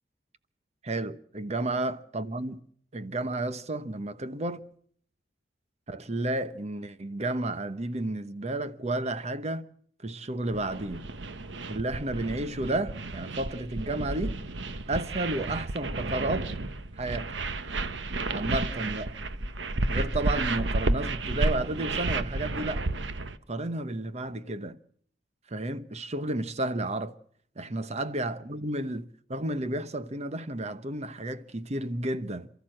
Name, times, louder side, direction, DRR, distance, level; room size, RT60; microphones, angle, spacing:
voice 1, 0.8-2.6 2.9-4.6 5.9-9.7 10.0-11.1 11.7-14.4 14.9-16.5 17.0-17.3 18.3-19.1 19.9-22.9 23.5-24.8 25.5-27.2 27.6-32.5, right 2 dB, 40° right, 1.0 m, -32 dB
sound 1, 10.5-23.4, right 2 dB, 85° right, 1.1 m, -32 dB
28.0 x 13.5 x 7.7 m
head